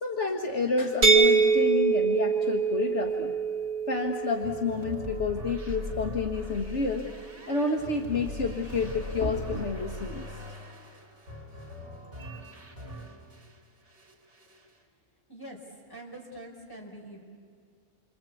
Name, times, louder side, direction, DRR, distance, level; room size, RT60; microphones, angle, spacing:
voice 1, 0.0-3.3 3.9-7.1 7.5-10.2, left 4 dB, 60° left, 2 dB, 1.8 m, -29 dB
sound 1, 1.0-6.8, right 5 dB, 90° right, 2.0 m, -26 dB
sound 2, 4.4-13.6 13.9-14.7, left 1 dB, 55° right, 3.6 m, -41 dB
voice 2, 15.9-17.2, right 1 dB, 15° left, -2 dB, 5.0 m, -44 dB
28.0 x 25.0 x 8.5 m, 2.1 s
omnidirectional pair, 1.3 m